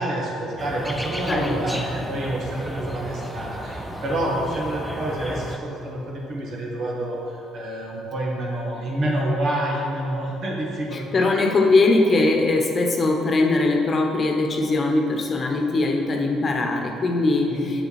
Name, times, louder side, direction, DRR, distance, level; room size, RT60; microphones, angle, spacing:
voice 1, 0.0-11.3 17.5-17.7, right 1 dB, 60° right, -3 dB, 1.9 m, -28 dB
sound 1, 0.6-5.6, equal, ahead, 0.9 m, -33 dB
voice 2, 1.3-1.8 9.0-9.4 10.9-17.9, left 2 dB, 40° left, 2 dB, 1.1 m, -21 dB
7.8 x 6.8 x 4.3 m, 2.8 s
hypercardioid pair, 55°, 0 cm